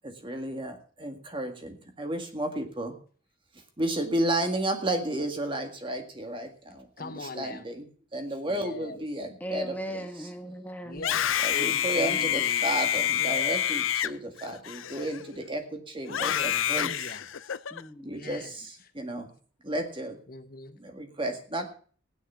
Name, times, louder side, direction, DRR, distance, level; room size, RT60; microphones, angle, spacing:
voice 1, 0.0-2.9 3.8-7.9 8.1-10.0 11.4-17.1 18.0-19.3 19.6-20.2 20.8-21.7, right 1 dB, 25° right, 5 dB, 1.9 m, -32 dB
voice 2, 7.0-7.7 8.5-9.0 10.8-12.6 12.9-13.6 16.1-17.4 18.1-18.6 18.8-18.9 20.3-20.8, left 2 dB, 50° left, 9 dB, 1.2 m, -41 dB
voice 3, 9.4-11.1 17.7-18.1, equal, 10° left, 5 dB, 1.2 m, -37 dB
Screaming, 10.9-15.4 16.1-17.8, left 10 dB, 90° left, 0.6 m, -28 dB
15.5 x 9.8 x 5.7 m, 0.44 s
head